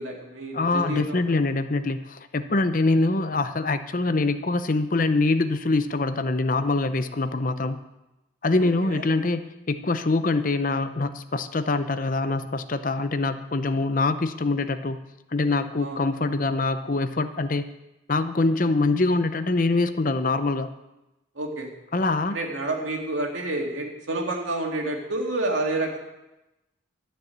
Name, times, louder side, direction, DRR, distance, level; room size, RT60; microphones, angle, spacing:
voice 1, 0.0-1.3 8.6-9.0 15.8-16.0 21.4-21.7 22.3-26.0, right 2 dB, 80° right, 1 dB, 2.5 m, -29 dB
voice 2, 0.5-7.8 8.4-15.0 15.3-17.7 18.1-20.7 21.9-22.4, left 3 dB, 45° left, 11 dB, 0.6 m, -24 dB
13.0 x 6.8 x 8.6 m, 0.98 s
head